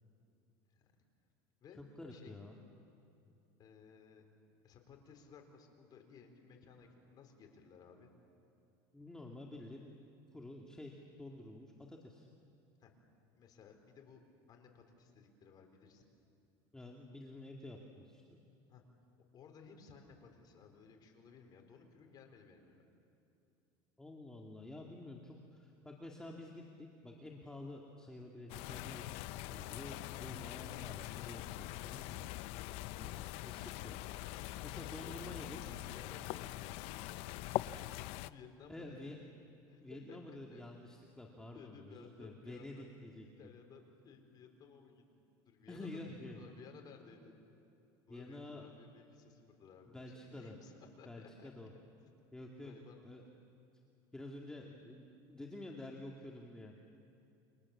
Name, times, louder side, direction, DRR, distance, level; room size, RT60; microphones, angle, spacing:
voice 1, 1.7-2.6 8.9-12.3 16.7-18.4 24.0-29.1 29.5-32.2 33.0-34.0 34.6-35.6 38.7-39.2 39.8-43.3 45.7-46.4 48.1-48.7 49.9-50.5 51.1-51.7 52.3-52.7 53.0-53.2 54.1-56.8, left 2 dB, 5° left, -1 dB, 2.2 m, -49 dB
voice 2, 3.6-4.3 4.6-8.1 12.8-12.9 13.3-14.2 14.5-16.1 18.7-18.8 19.3-22.8 34.9-37.1 38.2-39.2 39.7-40.6 41.5-42.9 43.4-45.0 45.4-47.4 48.1-51.5 52.6-53.0, left 5 dB, 40° left, 4 dB, 4.2 m, -57 dB
sound 1, 28.5-38.3, left 17 dB, 65° left, 0.6 m, -43 dB
29.5 x 25.0 x 7.3 m, 2.7 s
supercardioid pair, 130°, 11 cm